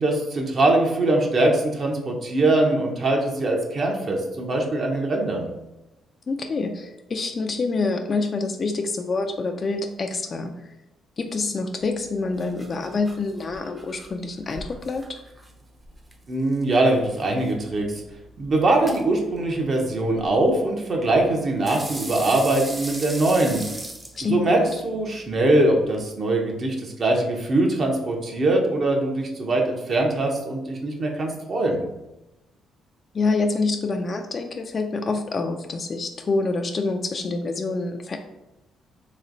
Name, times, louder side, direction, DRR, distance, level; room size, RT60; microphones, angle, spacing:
voice 1, 0.0-5.5 16.3-18.0 18.4-23.6 24.2-31.8, right 2 dB, 45° right, 1 dB, 0.9 m, -22 dB
voice 2, 6.3-10.6 11.2-15.0 24.2-24.7 33.1-38.2, left 3 dB, 40° left, 4 dB, 0.4 m, -26 dB
sound 1, 11.8-26.0, right 1 dB, 15° right, 0.6 m, -41 dB
3.1 x 3.1 x 3.8 m, 0.96 s
cardioid pair, 90°, 0 cm